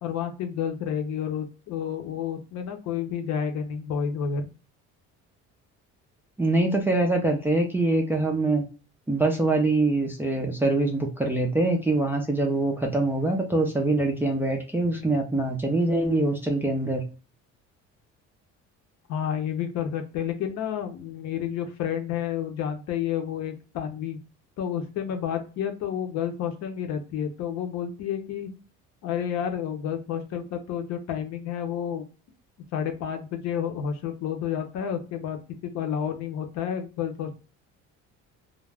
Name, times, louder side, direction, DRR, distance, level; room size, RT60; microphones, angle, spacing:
voice 1, 0.0-4.5 19.1-24.2 24.6-28.5 29.0-32.0 32.7-37.3, left 8 dB, 60° left, 6 dB, 0.7 m, -30 dB
voice 2, 6.4-8.6 9.1-17.0, right 2 dB, 5° right, 1 dB, 0.3 m, -24 dB
2.3 x 2.1 x 3.3 m, 0.34 s
cardioid pair, 135°, 31 cm